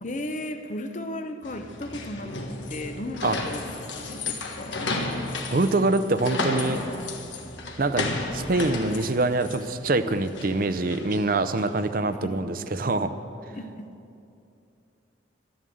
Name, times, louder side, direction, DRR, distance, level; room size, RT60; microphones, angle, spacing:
voice 1, 0.0-4.9 12.1-12.5 13.5-14.0, left 1 dB, 40° left, 7 dB, 0.7 m, -36 dB
sound 1, 1.4-11.9, left 2 dB, 75° left, 1.5 m, -33 dB
voice 2, 5.5-6.8 7.8-13.1, right 2 dB, 45° right, 11 dB, 0.6 m, -25 dB
12.5 x 11.0 x 7.8 m, 2.6 s
head